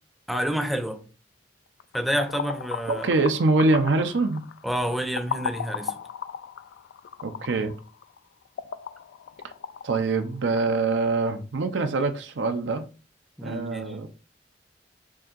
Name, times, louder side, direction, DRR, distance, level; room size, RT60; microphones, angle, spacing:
voice 1, 0.3-1.0 1.9-3.1 4.6-5.9 13.4-13.9, equal, ahead, 0.5 m, -28 dB
sound 1, 1.8-10.7, left 7 dB, 75° left, 0.3 m, -36 dB
voice 2, 2.9-4.4 7.2-7.7 9.8-12.9 13.4-14.1, right 3 dB, 85° right, 0.5 m, -24 dB
7.2 x 2.6 x 2.4 m
head